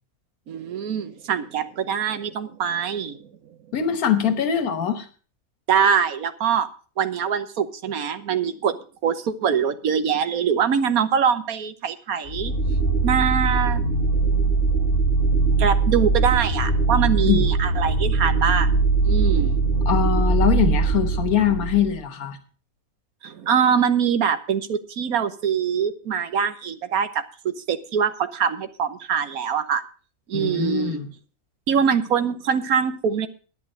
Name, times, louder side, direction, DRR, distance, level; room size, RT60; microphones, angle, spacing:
voice 1, 0.5-3.3 5.7-6.7 7.0-8.8 9.0-12.5 13.0-13.8 15.6-18.7 19.0-19.6 23.2-29.8 30.3-31.0 31.7-33.3, right 7 dB, 80° right, 11 dB, 1.5 m, -23 dB
voice 2, 3.7-5.1 17.2-17.5 19.8-22.4 30.3-31.1, left 9 dB, 85° left, 10 dB, 1.6 m, -22 dB
sound 1, 12.3-21.9, right 4 dB, 25° left, 6.0 m, -21 dB
11.0 x 10.5 x 5.3 m, 0.39 s
omnidirectional pair, 1.5 m